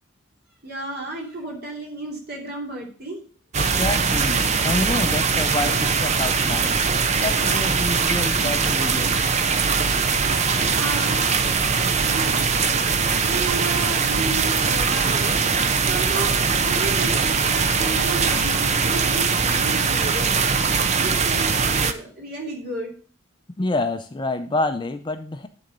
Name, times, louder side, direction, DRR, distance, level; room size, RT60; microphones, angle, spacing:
voice 1, 0.6-3.2 10.6-11.2 12.0-12.5 13.2-15.4 15.8-20.3 21.0-22.9, right 2 dB, 50° right, -1 dB, 2.8 m, -33 dB
sound 1, 3.5-21.9, right 5 dB, 35° right, 0.6 m, -21 dB
voice 2, 3.6-6.8 7.2-9.2 23.6-25.5, left 2 dB, 20° left, 9 dB, 0.4 m, -27 dB
11.0 x 3.9 x 5.3 m, 0.42 s
head